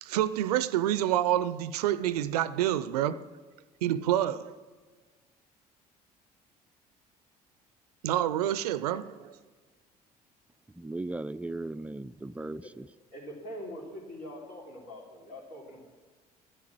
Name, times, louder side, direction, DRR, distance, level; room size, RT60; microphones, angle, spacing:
voice 1, 0.0-3.3 3.8-4.5 8.0-9.3, right 12 dB, 80° right, 0.5 m, -28 dB
voice 2, 10.7-12.9, right 2 dB, 5° right, 0.4 m, -37 dB
voice 3, 13.1-15.8, equal, 60° left, 3.7 m, -43 dB
13.0 x 12.0 x 6.2 m
hypercardioid pair, 55°, 20 cm